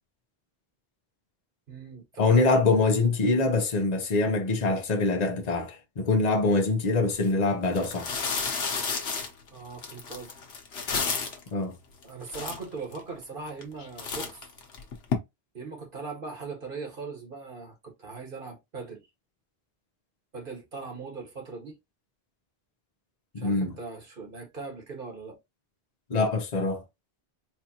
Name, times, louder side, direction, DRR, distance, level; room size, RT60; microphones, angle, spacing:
voice 1, 1.7-2.6 9.5-10.3 12.0-14.5 15.5-19.1 20.3-21.8 23.4-25.4, right 4 dB, 55° right, 1.5 m, -40 dB
voice 2, 2.2-8.1 11.5-11.8 23.3-23.7 26.1-26.8, left 3 dB, 45° left, 0.9 m, -24 dB
sound 1, 7.1-7.3 7.7-11.5 12.0-12.1 12.3-13.0 13.5-13.7 14.0-15.1, left 5 dB, 80° left, 1.2 m, -31 dB
4.5 x 2.5 x 2.9 m
omnidirectional pair, 1.0 m